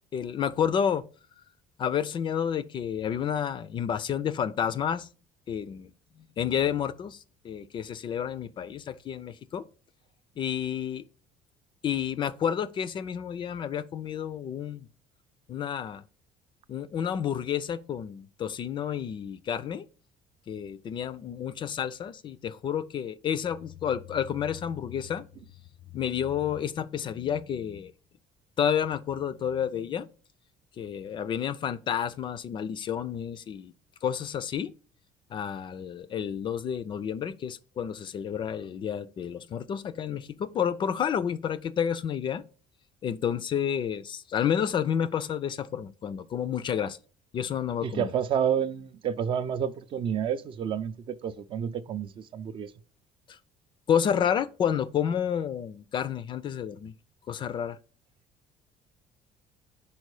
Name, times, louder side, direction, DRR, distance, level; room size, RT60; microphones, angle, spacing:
voice 1, 0.1-1.0 1.8-5.1 5.5-5.9 6.4-7.2 7.4-9.6 10.4-11.1 11.8-14.9 15.5-16.0 16.7-19.8 20.5-25.2 25.9-27.9 28.6-30.1 30.8-33.7 34.0-34.7 35.3-42.4 43.0-47.0 47.3-48.1 53.3-53.4 53.9-56.9 57.3-57.8, left 8 dB, 35° left, 0.4 m, -30 dB
voice 2, 47.8-52.7, right 8 dB, 35° right, 0.4 m, -30 dB
5.4 x 4.4 x 4.7 m
cardioid pair, 150°, 14 cm